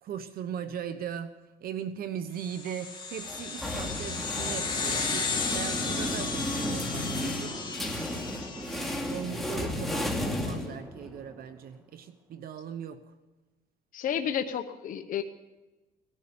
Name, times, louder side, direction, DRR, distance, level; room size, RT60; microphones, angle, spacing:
voice 1, 0.0-1.3 1.6-7.6 8.9-13.1, right 8 dB, 60° right, 11 dB, 1.0 m, -39 dB
sound 1, 2.5-9.3, left 5 dB, 25° left, 2.7 m, -34 dB
sound 2, 3.2-11.2, left 1 dB, ahead, 2.7 m, -34 dB
sound 3, 3.9-12.2, right 1 dB, 15° right, 1.7 m, -44 dB
voice 2, 13.9-15.2, left 9 dB, 55° left, 6 dB, 1.0 m, -31 dB
18.0 x 11.0 x 7.0 m, 1.1 s
cardioid pair, 110°, 17 cm